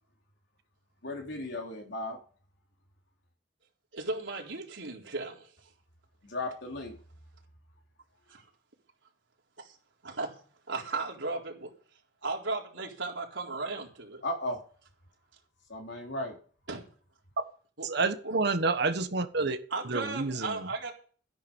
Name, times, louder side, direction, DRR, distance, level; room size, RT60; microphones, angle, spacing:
voice 1, 1.0-2.2 6.3-7.0 14.2-14.6 15.7-16.3, left 1 dB, 65° left, 3.7 m, -35 dB
voice 2, 3.9-5.5 8.3-8.5 9.6-9.7 10.0-10.3 10.7-11.7 12.2-14.2 16.7-16.8 17.8-17.9 18.2-18.4 19.7-20.9, right 3 dB, 80° right, 4.1 m, -35 dB
voice 3, 17.8-19.6 19.9-20.7, right 3 dB, 60° right, 1.3 m, -29 dB
14.0 x 10.5 x 5.5 m
head